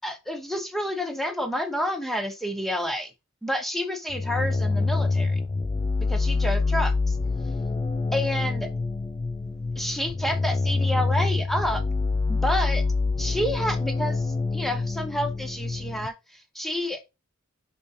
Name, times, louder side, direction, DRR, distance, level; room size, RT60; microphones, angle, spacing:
voice 1, 0.0-3.1 3.4-5.4 6.0-7.2 8.1-8.7 9.4-11.8 12.3-12.8 13.2-17.0, equal, ahead, 1.0 m, -29 dB
sound 1, 4.1-16.1, left 3 dB, 20° left, 0.3 m, -26 dB
5.2 x 5.0 x 4.9 m
head